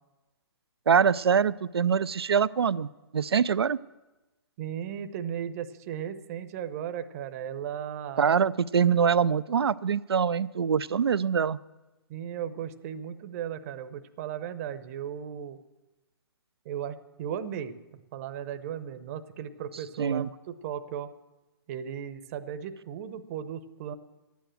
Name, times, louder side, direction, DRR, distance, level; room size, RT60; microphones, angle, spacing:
voice 1, 0.9-3.8 8.2-11.6 20.0-20.3, right 7 dB, 80° right, 17 dB, 0.5 m, -24 dB
voice 2, 4.6-8.3 12.1-15.6 16.6-21.1 21.7-23.9, right 9 dB, 40° right, 11 dB, 0.8 m, -36 dB
12.0 x 9.3 x 7.7 m, 1.1 s
hypercardioid pair, 135°, 13 cm